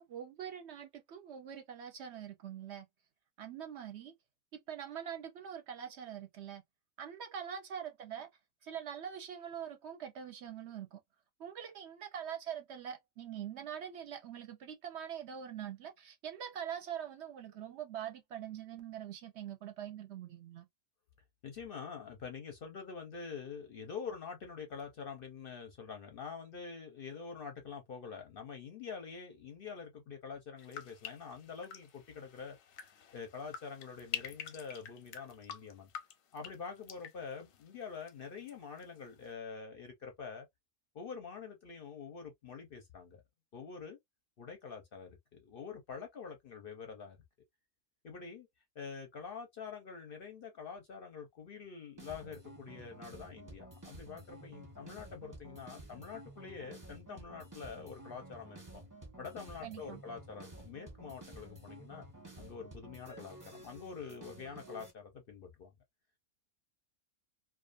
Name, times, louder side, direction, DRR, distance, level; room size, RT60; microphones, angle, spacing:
voice 1, 0.0-2.9 3.4-4.1 4.5-6.6 7.0-8.3 8.6-11.0 11.4-20.7 59.6-60.0, right 9 dB, 65° right, 0.8 m, -44 dB
voice 2, 21.4-32.6 33.1-35.9 36.3-40.5 40.9-43.2 43.5-44.0 44.4-47.2 48.0-48.5 48.8-58.8 59.2-62.0 62.4-65.7, left 6 dB, 55° left, 0.6 m, -46 dB
sound 1, 30.6-38.5 38.8-39.3, left 9 dB, 90° left, 1.0 m, -47 dB
sound 2, 52.0-64.9, right 2 dB, 15° right, 0.8 m, -52 dB
2.4 x 2.3 x 2.4 m
omnidirectional pair, 1.4 m